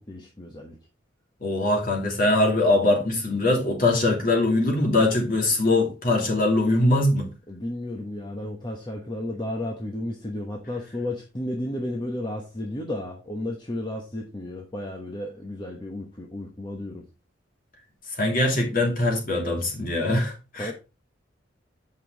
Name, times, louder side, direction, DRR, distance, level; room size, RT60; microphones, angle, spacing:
voice 1, 0.1-0.8 7.5-17.0 20.6-20.7, left 1 dB, 25° left, 1.1 m, -33 dB
voice 2, 1.4-7.3 18.2-20.7, left 2 dB, 45° left, 2.7 m, -22 dB
8.3 x 5.5 x 3.9 m
head